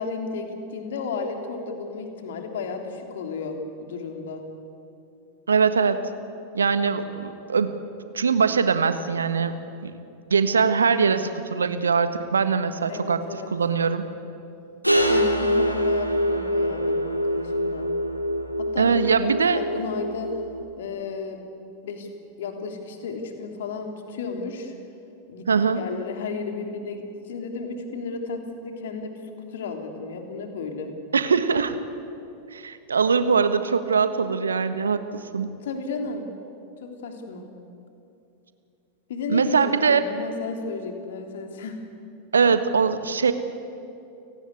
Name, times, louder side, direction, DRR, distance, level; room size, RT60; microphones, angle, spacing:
voice 1, 0.0-4.4 12.9-13.5 15.1-17.9 18.6-20.4 20.8-21.4 21.8-22.1 22.4-24.7 25.3-29.2 29.5-30.9 35.6-36.3 36.8-37.5 39.1-41.8, left 4 dB, 60° left, 4 dB, 3.3 m, -33 dB
voice 2, 5.5-6.1 6.5-7.8 8.1-9.5 9.8-9.9 10.3-13.2 13.5-14.0 18.8-19.6 25.5-25.8 31.1-31.8 32.5-35.5 39.3-40.0 42.3-43.3, right 5 dB, 70° right, 11 dB, 1.5 m, -22 dB
sound 1, 14.8-20.6, equal, 90° right, 2.3 m, -24 dB
30.0 x 18.5 x 8.4 m, 2.7 s
figure-of-eight pair, 90°, 0 cm